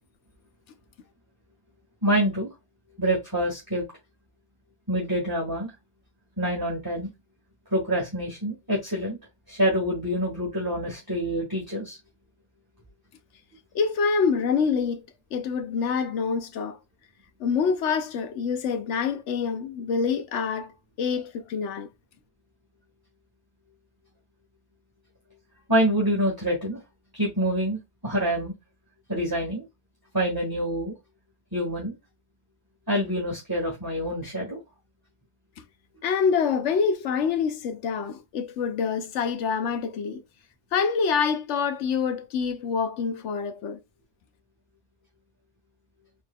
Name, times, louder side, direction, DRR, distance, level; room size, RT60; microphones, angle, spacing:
voice 1, 2.0-2.5 3.0-3.8 4.9-5.7 6.4-7.1 7.7-9.2 9.5-12.0 25.7-26.8 27.1-28.5 29.1-29.6 30.1-30.9 31.5-31.9 32.9-34.6, equal, 20° right, 1.6 m, -26 dB
voice 2, 13.7-15.1 15.3-16.8 17.4-20.7 21.0-21.9 36.0-40.2 40.7-43.8, left 6 dB, 85° left, 1.0 m, -26 dB
4.6 x 4.1 x 2.2 m
omnidirectional pair, 1.2 m